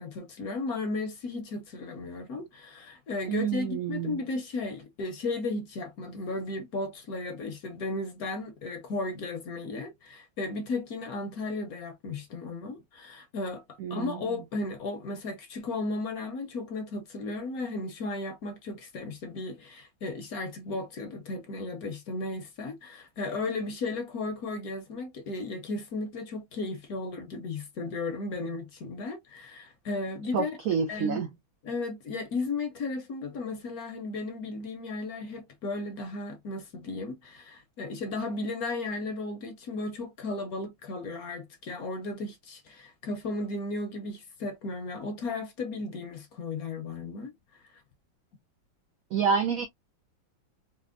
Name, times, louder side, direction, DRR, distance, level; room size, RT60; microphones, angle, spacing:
voice 1, 0.0-30.6 30.9-31.2 31.6-47.3, left 3 dB, 65° left, 1.0 m, -35 dB
voice 2, 3.3-4.2 13.8-14.2 30.3-31.3 49.1-49.7, right 6 dB, 85° right, 0.7 m, -28 dB
4.3 x 2.0 x 2.4 m
omnidirectional pair, 2.1 m